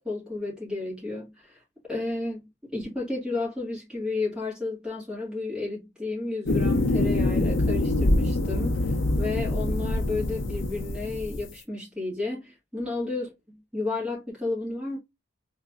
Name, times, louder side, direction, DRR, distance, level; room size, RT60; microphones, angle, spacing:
voice 1, 0.0-1.6 1.9-13.3 13.7-15.0, left 2 dB, 5° right, 1.8 m, -32 dB
sound 1, 6.4-11.5, left 2 dB, 60° left, 0.7 m, -25 dB
3.8 x 2.8 x 2.4 m
head